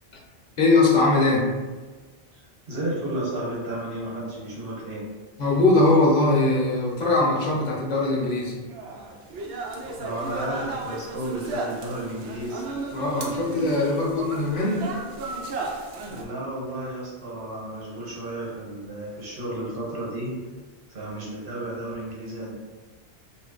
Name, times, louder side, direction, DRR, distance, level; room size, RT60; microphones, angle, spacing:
voice 1, 0.6-1.5 5.4-8.7 12.9-14.9, left 2 dB, 45° left, -2 dB, 0.7 m, -21 dB
voice 2, 2.7-5.0 10.0-12.6 16.1-20.4 20.9-22.5, right 1 dB, 55° right, -5 dB, 1.2 m, -32 dB
sound 1, 8.7-16.2, right 2 dB, 85° right, 0.9 m, -34 dB
3.0 x 2.5 x 3.8 m, 1.3 s
omnidirectional pair, 1.1 m